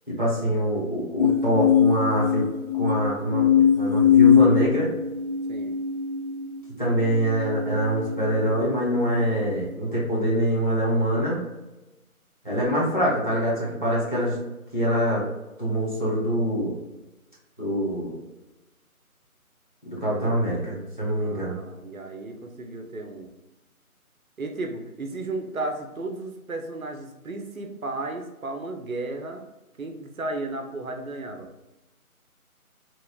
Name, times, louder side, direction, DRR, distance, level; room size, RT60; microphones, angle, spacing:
voice 1, 0.1-2.5 2.7-4.9 6.8-11.4 12.4-14.4 14.7-15.2 15.6-16.8 17.6-18.2 19.8-21.6, equal, 35° left, -6 dB, 0.8 m, -24 dB
sound 1, 1.2-8.6 9.2-9.7, left 8 dB, 70° left, 0.7 m, -22 dB
voice 2, 21.2-23.3 24.4-29.4 29.8-31.5, right 2 dB, 70° right, 4 dB, 0.6 m, -34 dB
3.0 x 2.8 x 2.3 m, 1.0 s
figure-of-eight pair, 180°, 44 cm